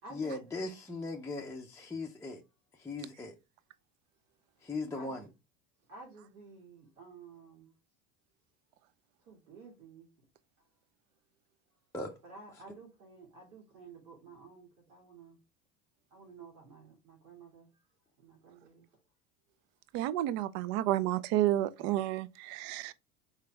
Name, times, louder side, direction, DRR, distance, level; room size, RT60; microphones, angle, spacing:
voice 1, 0.1-2.4 2.7-3.4 4.6-5.3 11.9-12.2 12.5-12.8 21.8-21.9, left 3 dB, 5° left, 0.5 m, -39 dB
voice 2, 4.9-5.3 5.9-7.7 9.3-10.1 12.2-15.4 16.1-17.7 18.2-18.9, right 3 dB, 75° right, 2.6 m, -52 dB
voice 3, 19.9-22.9, right 14 dB, 50° right, 0.5 m, -30 dB
4.4 x 3.2 x 3.4 m
hypercardioid pair, 85°, 46 cm